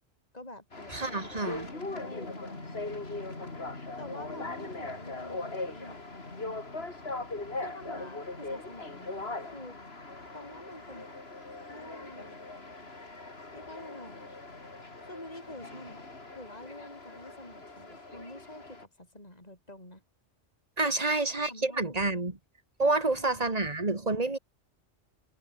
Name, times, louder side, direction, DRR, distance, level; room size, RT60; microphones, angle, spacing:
voice 1, 0.3-3.5 4.0-6.0 7.6-9.8 10.3-11.2 11.7-12.4 13.5-14.3 15.0-16.1 16.3-20.0 20.8-21.2 21.5-22.2 23.0-23.5, left 1 dB, 35° left, 6.6 m, -48 dB
sound 1, 0.7-18.8, left 2 dB, 60° left, 3.7 m, -40 dB
voice 2, 0.9-1.7 20.8-22.3 22.8-24.4, right 3 dB, 35° right, 2.3 m, -28 dB
omnidirectional pair, 1.2 m